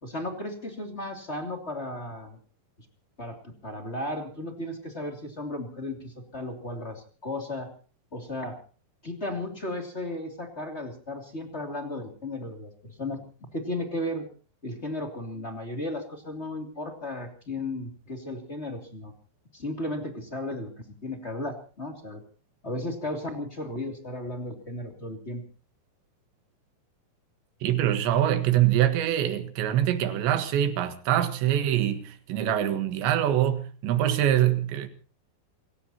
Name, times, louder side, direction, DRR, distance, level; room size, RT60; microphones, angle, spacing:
voice 1, 0.0-2.4 3.2-7.7 8.1-8.6 9.0-13.2 13.5-14.3 14.6-19.1 19.5-22.2 22.6-25.4, left 1 dB, 20° left, 2.3 m, -35 dB
voice 2, 27.6-34.9, right 11 dB, 85° right, 3.8 m, -24 dB
28.5 x 16.5 x 2.9 m
omnidirectional pair, 5.0 m